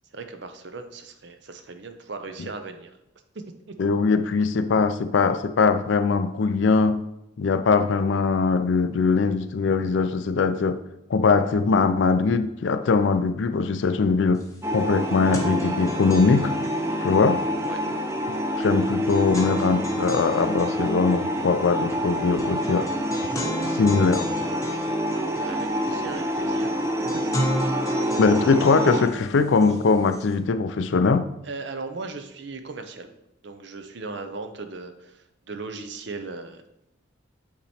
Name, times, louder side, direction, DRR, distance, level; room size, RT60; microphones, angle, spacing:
voice 1, 0.1-3.0 3.3-3.8 17.6-17.8 25.4-26.8 27.0-27.3 28.1-28.2 31.4-33.1 33.4-36.6, right 3 dB, 55° right, 7 dB, 0.6 m, -37 dB
voice 2, 3.8-7.0 7.4-10.8 11.1-14.4 14.7-16.5 17.0-17.4 18.6-22.9 23.7-24.3 28.2-31.3, left 4 dB, 65° left, 11 dB, 0.4 m, -21 dB
sound 1, 14.4-14.5 14.8-30.3, equal, 15° left, 0.8 m, -35 dB
sound 2, 14.6-29.1, equal, 15° right, 0.3 m, -27 dB
8.5 x 3.0 x 4.2 m, 0.86 s
head